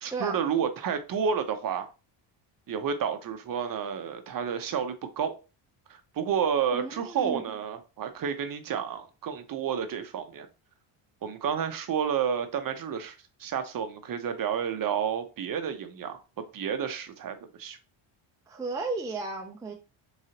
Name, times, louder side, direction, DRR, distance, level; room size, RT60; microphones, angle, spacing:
voice 1, 0.0-1.9 2.7-5.3 5.9-10.5 11.2-13.1 13.4-16.2 16.5-17.8, right 7 dB, 45° right, 0.7 m, -30 dB
voice 2, 6.7-7.4 18.5-19.7, right 3 dB, 10° right, 0.3 m, -34 dB
3.8 x 3.0 x 2.8 m
cardioid pair, 110°, 50 cm